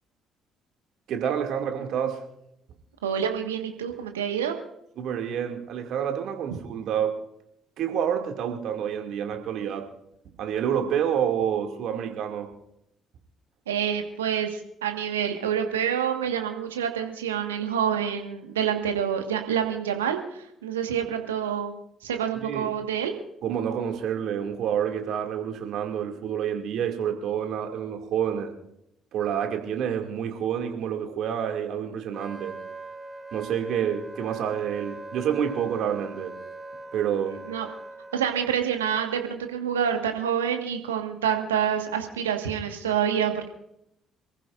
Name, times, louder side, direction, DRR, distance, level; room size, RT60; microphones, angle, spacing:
voice 1, 1.1-2.2 5.0-7.2 7.8-9.9 10.2-12.6 22.4-22.7 23.4-28.6 29.1-32.6 33.3-36.4 36.9-37.4, right 8 dB, 60° right, 3 dB, 2.4 m, -28 dB
voice 2, 3.0-4.6 13.7-21.7 22.0-23.1 37.2-37.7 38.1-43.5, right 8 dB, 85° right, 5 dB, 1.6 m, -27 dB
Wind instrument woodwind instrument, 32.1-38.3, right 3 dB, 20° right, 1.6 m, -41 dB
27.5 x 15.0 x 2.6 m, 0.80 s
figure-of-eight pair, 50°, 0 cm